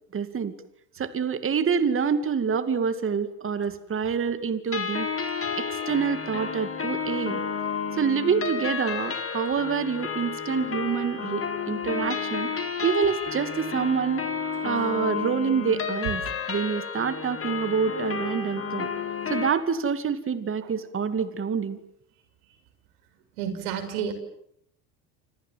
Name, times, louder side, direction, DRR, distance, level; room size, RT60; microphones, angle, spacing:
voice 1, 0.1-0.5 1.0-7.4 7.9-12.5 12.8-14.3 14.6-16.2 16.5-18.9 19.3-21.8, right 6 dB, 30° right, 11 dB, 2.4 m, -27 dB
sound 1, 4.7-19.5, left 6 dB, 30° left, 4.3 m, -31 dB
voice 2, 23.4-24.1, right 8 dB, 70° right, 10 dB, 6.2 m, -30 dB
29.0 x 26.5 x 7.6 m, 0.71 s
hypercardioid pair, 85°, 44 cm